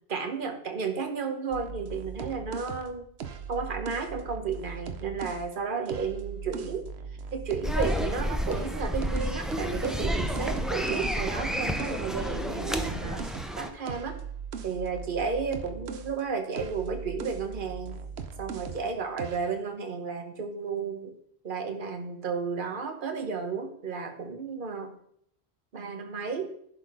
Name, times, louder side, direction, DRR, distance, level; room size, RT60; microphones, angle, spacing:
voice 1, 0.1-3.1 3.5-6.9 7.3-13.3 13.6-14.2 14.6-18.0 18.4-21.1 21.4-25.0 25.7-26.5, right 5 dB, 55° right, 6 dB, 1.2 m, -33 dB
sound 1, 1.5-5.5 5.9-8.2 8.5-16.2 16.5-18.9 19.2-19.5, right 6 dB, 90° right, 1.0 m, -39 dB
sound 2, 7.6-13.7, equal, ahead, 0.4 m, -30 dB
11.0 x 4.0 x 4.8 m, 0.68 s
omnidirectional pair, 1.1 m